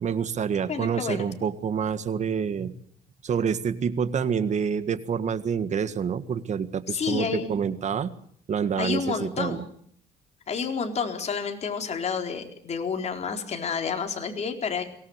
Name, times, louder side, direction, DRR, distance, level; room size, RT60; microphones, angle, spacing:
voice 1, 0.0-2.7 3.2-8.1 8.5-9.6, right 7 dB, 45° right, 13 dB, 1.7 m, -27 dB
voice 2, 0.7-1.3 6.9-7.5 8.8-9.7 10.5-14.8, left 6 dB, 40° left, 4 dB, 4.2 m, -29 dB
23.0 x 18.0 x 8.1 m, 0.63 s
cardioid pair, 110°, 17 cm